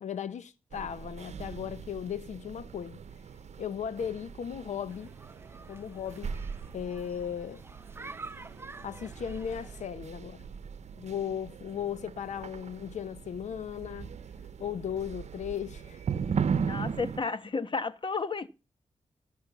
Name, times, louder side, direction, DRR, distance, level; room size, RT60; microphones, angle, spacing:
voice 1, 0.0-3.0 3.6-5.1 5.7-6.3 6.7-7.6 8.8-10.4 11.0-14.1 14.6-16.4, left 8 dB, 80° left, 0.9 m, -36 dB
sound 1, 0.7-17.2, right 6 dB, 70° right, 0.8 m, -38 dB
sound 2, 4.9-9.9, right 3 dB, 20° right, 0.5 m, -48 dB
voice 2, 16.6-18.5, left 4 dB, 45° left, 1.3 m, -32 dB
13.5 x 6.7 x 6.8 m
cardioid pair, 50°, 12 cm